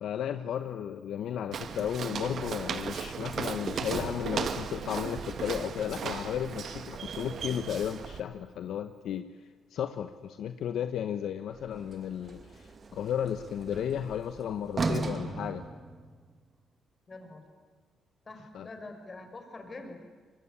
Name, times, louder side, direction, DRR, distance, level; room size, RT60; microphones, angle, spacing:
voice 1, 0.0-9.3 9.7-15.7 18.5-18.7, left 9 dB, 70° left, 10 dB, 1.1 m, -34 dB
Walk footsteps, 1.5-8.2, right 6 dB, 55° right, 1.9 m, -36 dB
Sliding door, 3.7-8.0 11.5-16.4, right 3 dB, 40° right, 2.2 m, -40 dB
voice 2, 17.1-17.4 18.3-20.1, left 2 dB, 30° left, 6 dB, 5.5 m, -45 dB
24.5 x 21.5 x 9.9 m, 1.5 s
cardioid pair, 90°, 0 cm